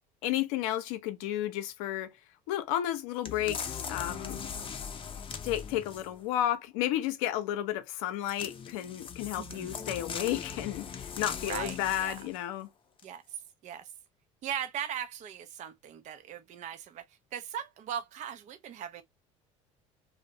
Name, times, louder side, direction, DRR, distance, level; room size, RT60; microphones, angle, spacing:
voice 1, 0.2-2.1 2.5-4.5 5.4-12.7, left 12 dB, 75° left, 0.6 m, -32 dB
sound 1, 3.2-6.2 8.2-12.4 13.0-13.1, left 6 dB, 30° left, 0.6 m, -40 dB
voice 2, 9.3-9.8 11.5-12.2 13.0-13.2 13.6-13.9 14.4-17.0 17.3-19.0, right 9 dB, 45° right, 0.5 m, -39 dB
2.4 x 2.0 x 2.7 m
hypercardioid pair, 75°, 18 cm